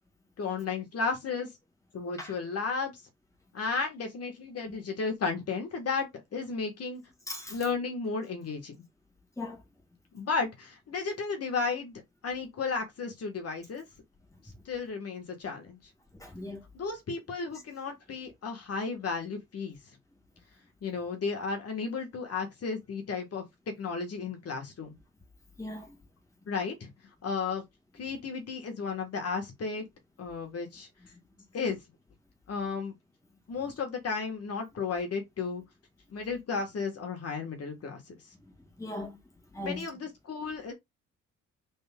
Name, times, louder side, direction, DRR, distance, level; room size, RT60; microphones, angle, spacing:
voice 1, 0.4-1.5 1.9-3.0 3.5-7.0 7.5-8.8 10.1-13.9 14.6-15.8 16.7-20.0 20.8-23.4 23.8-24.9 26.5-26.9 27.2-27.6 27.9-29.8 30.2-30.9 31.5-31.8 32.5-32.9 33.5-35.6 36.1-38.1 39.6-40.7, left 4 dB, 55° left, 1.7 m, -33 dB
voice 2, 7.3-7.6 9.4-9.6 16.2-16.6 25.6-25.9 38.8-39.2 39.5-39.8, left 1 dB, 10° left, 1.9 m, -38 dB
3.9 x 3.6 x 3.6 m
cardioid pair, 90°, 30 cm